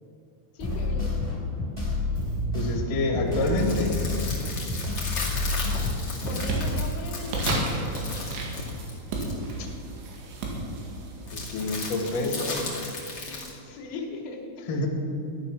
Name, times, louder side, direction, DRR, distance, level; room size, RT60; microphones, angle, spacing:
voice 1, 0.5-1.3 6.2-7.7 13.3-14.7, left 3 dB, 90° left, 1 dB, 4.3 m, -39 dB
sound 1, 0.6-6.8, left 2 dB, 5° right, 3.0 m, -29 dB
voice 2, 2.5-3.9 11.3-12.6 14.7-14.9, left 2 dB, 55° left, 1 dB, 2.8 m, -27 dB
sound 2, 3.3-9.5 11.3-13.5, left 3 dB, 35° left, 1.9 m, -35 dB
sound 3, 5.6-5.7 6.0-12.6, right 2 dB, 70° right, 4.2 m, -34 dB
14.5 x 11.0 x 6.3 m, 2.6 s
omnidirectional pair, 5.7 m